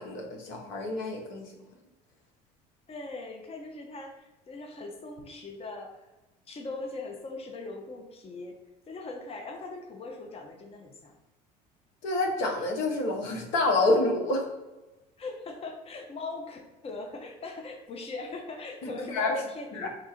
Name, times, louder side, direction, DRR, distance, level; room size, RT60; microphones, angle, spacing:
voice 1, 0.0-1.5 12.0-14.5 18.8-19.3 19.7-19.9, left 2 dB, 65° left, 1 dB, 1.0 m, -28 dB
voice 2, 2.9-5.9 6.5-8.5 8.9-11.1 15.2-19.9, left 3 dB, 30° left, 2 dB, 0.7 m, -40 dB
3.7 x 2.4 x 4.2 m, 1.1 s
hypercardioid pair, 75°, 21 cm